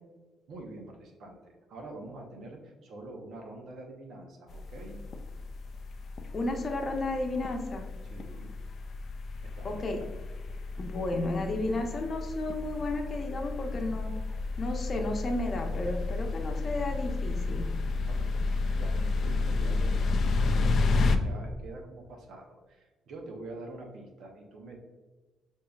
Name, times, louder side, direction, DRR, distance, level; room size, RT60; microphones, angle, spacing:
voice 1, 0.5-5.0 8.0-8.5 9.4-10.1 18.1-24.8, right 2 dB, 70° right, 2 dB, 0.8 m, -46 dB
sound 1, 4.5-21.2, left 3 dB, 55° left, 0.4 m, -31 dB
voice 2, 6.3-7.9 9.6-10.0 10.8-14.1 14.6-17.7, left 2 dB, 40° left, 2 dB, 0.8 m, -33 dB
6.4 x 2.7 x 2.3 m, 1.3 s
cardioid pair, 90°, 0 cm